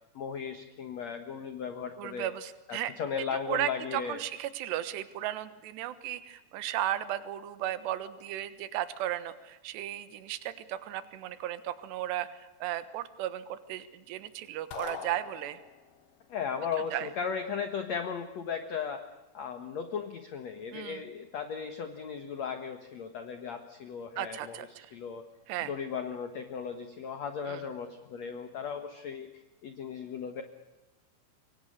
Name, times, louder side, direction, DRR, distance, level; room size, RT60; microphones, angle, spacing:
voice 1, 0.2-2.3 2.7-4.2 16.3-19.0 19.3-25.2 25.6-30.4, left 6 dB, 65° left, 7 dB, 1.8 m, -36 dB
voice 2, 2.0-2.9 3.2-15.6 16.9-17.1 20.7-21.0 24.2-24.9 25.5-25.7 27.5-27.6, right 13 dB, 75° right, 13 dB, 3.4 m, -35 dB
sound 1, 14.7-16.0, left 8 dB, 90° left, 4.5 m, -42 dB
27.0 x 24.0 x 6.6 m, 1.0 s
omnidirectional pair, 5.1 m